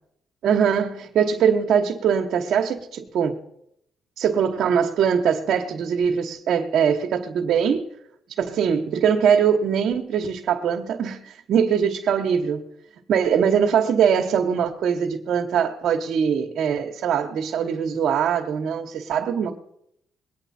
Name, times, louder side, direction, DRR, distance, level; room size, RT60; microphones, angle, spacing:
voice 1, 0.4-3.4 4.2-7.8 8.4-12.6 13.1-19.6, right 7 dB, 70° right, 1.2 m, -22 dB
21.0 x 9.2 x 4.4 m
cardioid pair, 90°, 0 cm